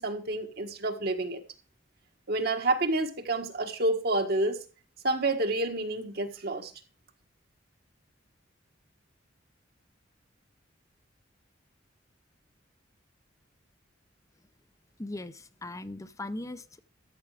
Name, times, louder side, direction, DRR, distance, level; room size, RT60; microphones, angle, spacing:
voice 1, 0.0-1.4 2.3-4.6 5.0-6.7, right 2 dB, 60° right, 1.6 m, -29 dB
voice 2, 15.0-16.8, left 2 dB, 15° left, 0.7 m, -39 dB
13.5 x 7.1 x 4.9 m
head